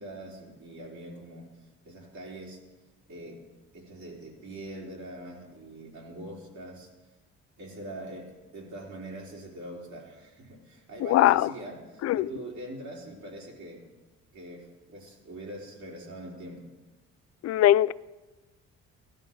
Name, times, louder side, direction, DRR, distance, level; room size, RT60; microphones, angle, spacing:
voice 1, 0.0-1.5 1.8-2.6 3.1-3.4 3.7-6.9 7.6-13.9 14.3-16.7, right 1 dB, 70° right, 4.3 m, -43 dB
voice 2, 11.0-11.5 12.0-12.3 17.4-17.9, left 13 dB, 55° left, 0.4 m, -21 dB
16.5 x 11.5 x 5.4 m
cardioid pair, 90°, 30 cm